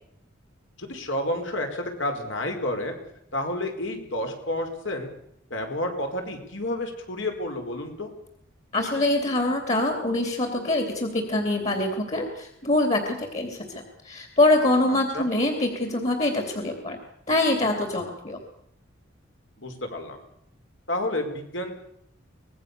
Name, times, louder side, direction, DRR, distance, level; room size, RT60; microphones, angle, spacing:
voice 1, 0.8-2.9 3.3-5.1 5.5-8.1 15.1-15.3 19.6-20.2 20.9-21.7, left 1 dB, 65° left, 4 dB, 5.0 m, -30 dB
voice 2, 8.7-17.0 17.3-18.4, left 2 dB, 35° left, 5 dB, 3.2 m, -24 dB
25.0 x 20.0 x 6.9 m, 0.73 s
head